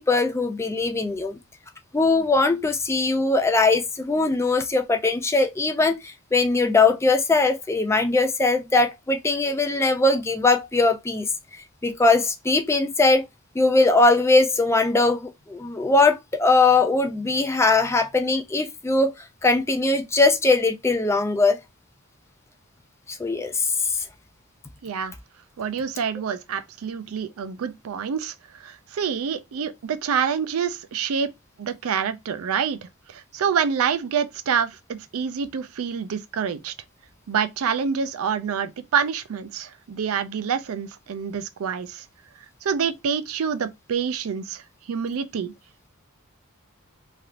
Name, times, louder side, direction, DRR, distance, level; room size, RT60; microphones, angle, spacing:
voice 1, 0.0-1.4 1.9-11.3 11.8-13.3 13.6-19.1 19.4-21.6 23.1-24.0, left 3 dB, 10° left, 0.3 m, -20 dB
voice 2, 24.8-25.1 25.6-31.3 31.6-32.8 33.1-36.7 37.3-42.0 42.6-44.6 44.9-45.5, right 7 dB, 75° right, 0.4 m, -27 dB
3.2 x 2.7 x 2.5 m
head